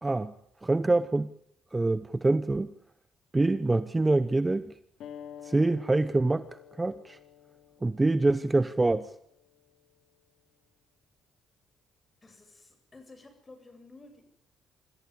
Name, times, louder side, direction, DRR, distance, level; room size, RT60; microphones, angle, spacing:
voice 1, 0.0-0.3 0.6-1.3 1.7-2.7 3.3-4.7 5.4-7.2 7.8-9.1, right 2 dB, 20° right, 14 dB, 1.0 m, -25 dB
sound 1, 5.0-10.1, left 9 dB, 75° left, 2.7 m, -50 dB
voice 2, 12.2-14.2, left 3 dB, 25° left, 7 dB, 8.0 m, -52 dB
26.0 x 15.0 x 9.9 m, 0.70 s
cardioid pair, 90°, 0 cm